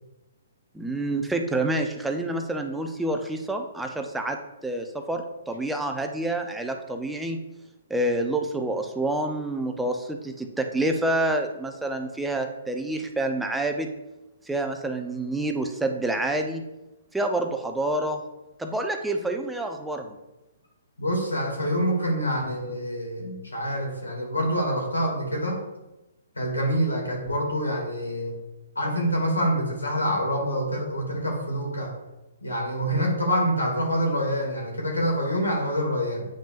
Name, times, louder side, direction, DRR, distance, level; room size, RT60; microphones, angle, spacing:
voice 1, 0.7-4.4 4.6-7.4 7.9-13.9 14.5-16.6 17.1-18.2 18.6-20.1, right 1 dB, 5° right, 4 dB, 0.7 m, -28 dB
voice 2, 21.0-25.6 26.3-28.4 28.8-31.9 32.4-36.3, equal, 80° left, -1 dB, 2.4 m, -26 dB
8.8 x 5.2 x 2.5 m, 1.0 s
figure-of-eight pair, 125°, 0 cm